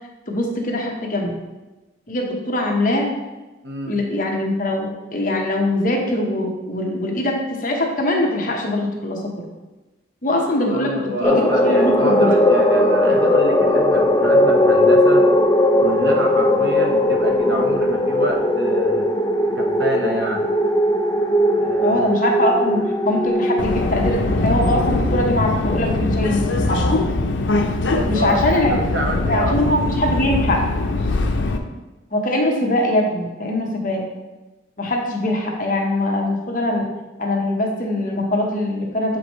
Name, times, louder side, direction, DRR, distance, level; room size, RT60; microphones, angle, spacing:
voice 1, 0.3-1.3 2.1-3.1 3.9-9.4 10.2-12.3 21.8-22.8 23.0-27.0 28.0-28.7 29.3-30.6 32.1-34.0 34.8-36.9 37.2-39.2, left 1 dB, 45° left, 0 dB, 1.0 m, -22 dB
voice 2, 3.6-4.0 10.7-15.3 15.8-19.1 19.4-20.5 21.6-22.0 27.9-29.8, right 1 dB, 65° right, 2 dB, 1.0 m, -27 dB
sound 1, 11.2-25.8, left 1 dB, 20° left, 0.5 m, -18 dB
Subway metro underground, 23.6-31.6, left 2 dB, 85° left, 0.6 m, -21 dB
7.2 x 5.0 x 3.1 m, 1.1 s
head